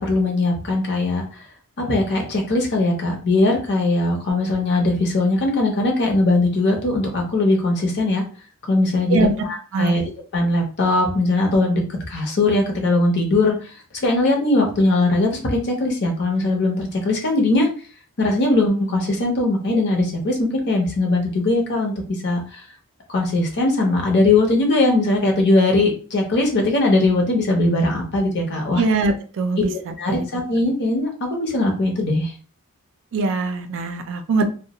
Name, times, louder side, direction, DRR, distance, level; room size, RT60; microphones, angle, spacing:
voice 1, 0.0-1.5 1.8-8.2 8.7-10.0 10.3-11.8 12.1-17.7 18.2-22.7 23.1-28.8 29.7-32.3, left 2 dB, 50° left, 1 dB, 0.7 m, -20 dB
voice 2, 28.8-30.3 33.1-34.5, right 3 dB, 60° right, 7 dB, 0.4 m, -22 dB
2.2 x 2.1 x 2.8 m, 0.39 s
head